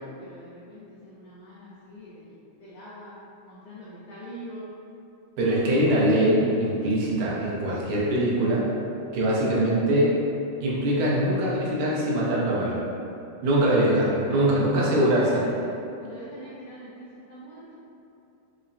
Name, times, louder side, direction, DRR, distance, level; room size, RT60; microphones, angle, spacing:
voice 1, 0.0-2.3 2.6-3.1 3.4-4.7 14.3-14.9 15.2-15.7 16.0-17.7, equal, 85° left, -9 dB, 1.4 m, -43 dB
voice 2, 5.4-8.7 9.1-10.1 10.6-12.8 13.4-15.4, right 1 dB, 85° right, -5 dB, 2.2 m, -22 dB
5.5 x 2.1 x 2.5 m, 2.7 s
omnidirectional pair, 3.6 m